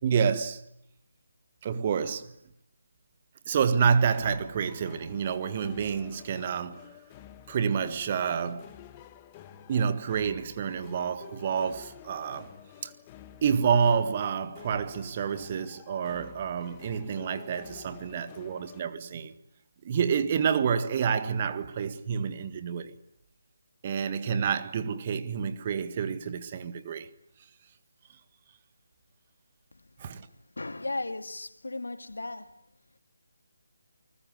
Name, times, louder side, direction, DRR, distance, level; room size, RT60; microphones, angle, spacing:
voice 1, 0.0-0.6 1.6-2.3 3.5-6.9 7.5-8.7 9.7-12.5 12.8-12.9 13.4-19.3 19.8-22.9 23.8-27.1 30.0-30.3, right 6 dB, 30° right, 1.7 m, -28 dB
sound 1, 3.7-18.8, left 11 dB, 20° left, 1.5 m, -50 dB
voice 2, 30.6-32.5, left 2 dB, 65° left, 2.1 m, -35 dB
29.0 x 20.0 x 9.6 m
figure-of-eight pair, 150°, 0 cm